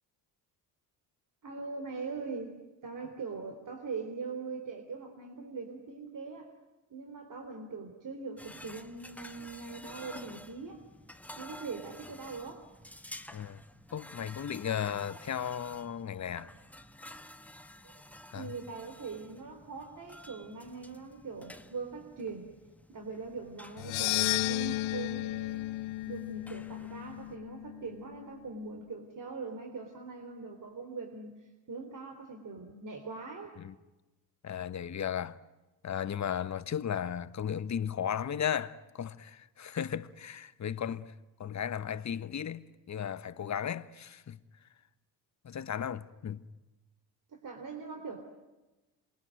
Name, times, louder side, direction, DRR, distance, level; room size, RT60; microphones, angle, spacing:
voice 1, 1.4-2.5 2.8-6.5 6.9-10.8 11.4-12.7 17.8-17.9 18.3-22.5 22.9-25.8 26.1-31.3 31.7-33.6 47.3-48.4, right 4 dB, 40° right, 3.8 m, -42 dB
sound 1, 8.4-27.3, left 1 dB, 5° left, 1.5 m, -51 dB
voice 2, 13.9-16.5 18.3-18.5 33.6-33.7 34.4-35.4 35.8-41.1 41.4-44.4 45.4-46.4, left 8 dB, 35° left, 1.3 m, -35 dB
sound 2, 23.8-28.1, left 19 dB, 70° left, 0.9 m, -33 dB
28.0 x 22.5 x 9.3 m
hypercardioid pair, 60°, 49 cm